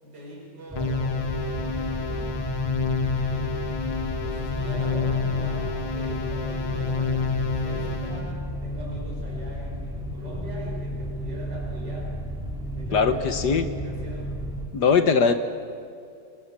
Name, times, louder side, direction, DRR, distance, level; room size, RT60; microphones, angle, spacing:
voice 1, 0.0-2.4 3.1-12.1 12.6-14.4, equal, 55° right, -2 dB, 6.3 m, -41 dB
sound 1, 0.7-14.7, equal, ahead, 2.7 m, -33 dB
sound 2, 0.8-8.3, left 5 dB, 90° left, 2.9 m, -29 dB
voice 2, 12.9-13.6 14.7-15.3, left 5 dB, 60° left, 9 dB, 1.6 m, -20 dB
27.5 x 23.5 x 7.4 m, 2.5 s
omnidirectional pair, 2.2 m